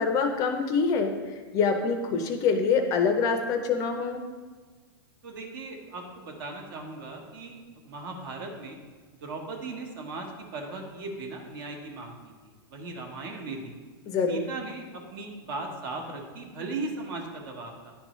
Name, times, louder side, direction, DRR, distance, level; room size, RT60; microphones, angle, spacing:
voice 1, 0.0-4.2 14.1-14.5, left 5 dB, 25° left, 6 dB, 0.5 m, -25 dB
voice 2, 5.2-7.6 7.8-8.8 9.2-10.3 10.5-12.2 12.4-13.7 14.3-17.9, right 3 dB, 60° right, 2 dB, 1.2 m, -38 dB
10.5 x 3.8 x 3.0 m, 1.4 s
supercardioid pair, 155°, 13 cm